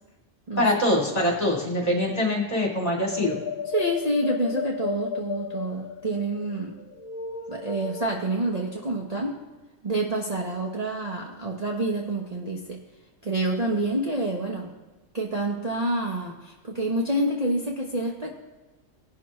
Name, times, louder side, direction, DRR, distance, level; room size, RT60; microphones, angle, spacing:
voice 1, 0.6-3.4, left 1 dB, 30° left, -3 dB, 2.6 m, -24 dB
sound 1, 3.1-8.1, left 6 dB, 80° left, 1.2 m, -34 dB
voice 2, 3.7-6.8 7.5-9.4 9.8-12.8 13.2-14.8 15.1-18.3, right 1 dB, 35° right, -1 dB, 0.9 m, -28 dB
17.5 x 5.9 x 3.1 m, 1.2 s
omnidirectional pair, 1.4 m